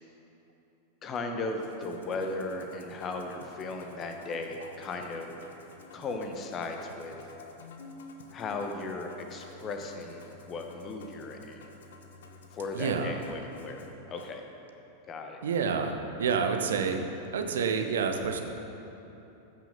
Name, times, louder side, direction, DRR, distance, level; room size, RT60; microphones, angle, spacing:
voice 1, 1.0-5.3 5.9-7.1 8.3-11.7 12.5-14.4 15.1-15.4, left 3 dB, 30° left, 4 dB, 1.1 m, -36 dB
Musical instrument, 1.5-14.4, left 3 dB, 60° left, 1.0 m, -50 dB
voice 2, 12.7-13.2 15.4-17.0 17.3-18.4, right 6 dB, 65° right, 5 dB, 0.9 m, -28 dB
14.5 x 6.1 x 5.5 m, 3.0 s
figure-of-eight pair, 90°, 0 cm